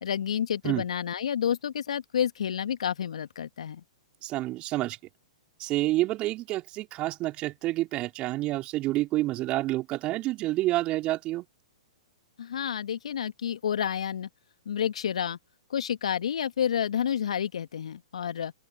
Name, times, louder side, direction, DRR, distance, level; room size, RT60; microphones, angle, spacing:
voice 1, 0.0-3.8 12.4-14.3 14.7-15.4 15.7-18.5, left 8 dB, 70° left, 1.8 m, -29 dB
voice 2, 4.2-5.0 5.6-11.5, right 17 dB, 30° right, 4.3 m, -28 dB
open air
figure-of-eight pair, 115°, 4 cm